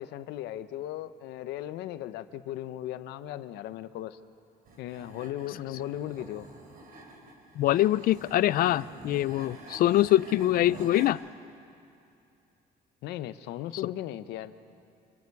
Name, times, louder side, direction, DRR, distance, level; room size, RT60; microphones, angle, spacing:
voice 1, 0.0-4.2 4.8-6.5 13.0-14.5, left 13 dB, 85° left, 13 dB, 0.8 m, -37 dB
sound 1, 4.7-11.1, right 3 dB, 60° right, 3.4 m, -47 dB
voice 2, 7.6-11.2, left 14 dB, 60° left, 20 dB, 0.4 m, -24 dB
27.5 x 22.5 x 4.7 m, 2.6 s
cardioid pair, 110°, 17 cm